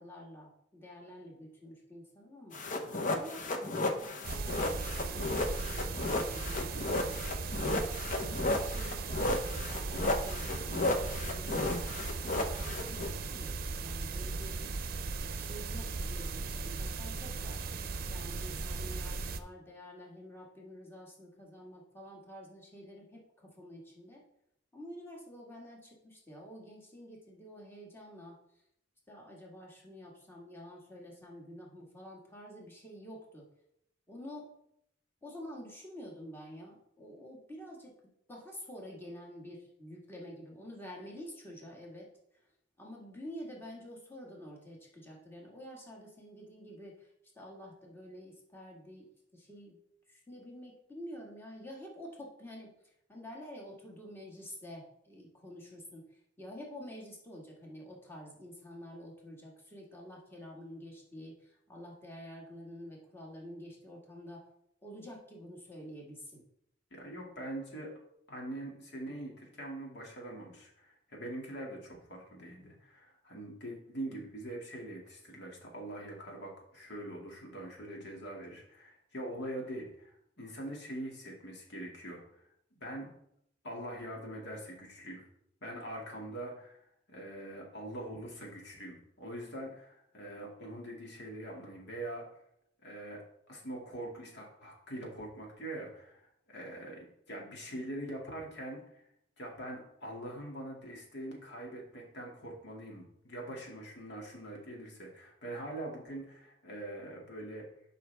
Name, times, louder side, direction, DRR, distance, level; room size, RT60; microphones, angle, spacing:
voice 1, 0.0-2.6 3.1-7.7 8.3-11.6 12.6-14.6 15.3-17.6 18.1-24.2 24.7-28.6 29.1-33.5 34.1-34.5 35.2-38.0 38.3-42.5 42.8-49.8 50.1-64.4 64.8-66.4, equal, 10° left, -2 dB, 2.0 m, -49 dB
sound 1, 2.5-13.1, left 2 dB, 45° left, 1.0 m, -33 dB
sound 2, 4.2-19.4, right 3 dB, 55° right, 0.6 m, -37 dB
voice 2, 66.9-67.9 68.3-82.5 82.8-83.1 83.6-85.2 85.6-86.8 87.1-92.3 92.8-99.0 99.4-107.7, right 1 dB, 65° left, -1 dB, 2.5 m, -43 dB
11.0 x 5.7 x 3.5 m, 0.75 s
head